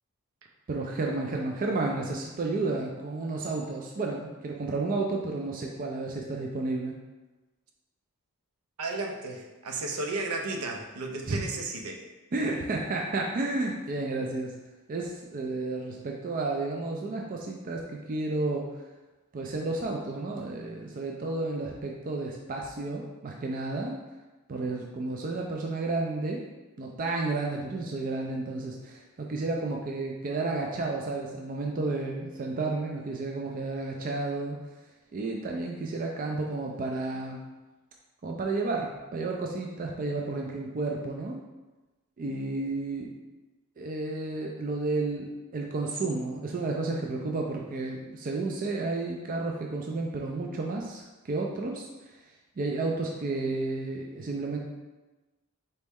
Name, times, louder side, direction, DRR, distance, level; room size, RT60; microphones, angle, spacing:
voice 1, 0.7-6.9 11.3-11.4 12.3-14.5 14.9-18.7 19.3-23.9 24.5-26.4 26.8-34.6 35.1-37.4 38.2-41.4 42.2-43.1 43.8-52.2 52.6-54.6, right 3 dB, 40° right, 0 dB, 0.4 m, -32 dB
voice 2, 8.8-12.0, right 3 dB, 80° right, 2 dB, 0.7 m, -34 dB
4.2 x 3.1 x 3.5 m, 1.2 s
head